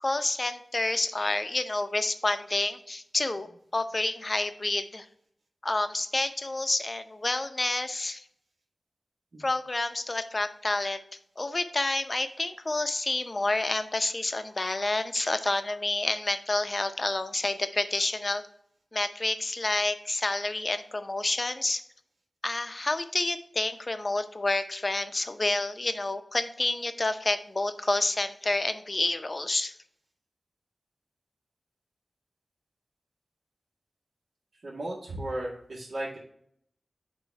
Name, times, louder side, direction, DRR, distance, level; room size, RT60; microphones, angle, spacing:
voice 1, 0.0-3.5 3.7-5.1 5.6-8.2 9.4-11.0 11.4-18.4 18.9-21.8 22.4-29.7, left 2 dB, 35° left, 9 dB, 0.6 m, -29 dB
voice 2, 34.6-36.2, right 1 dB, 70° right, -7 dB, 2.0 m, -35 dB
8.9 x 3.0 x 4.6 m, 0.67 s
wide cardioid pair, 85°, 0 cm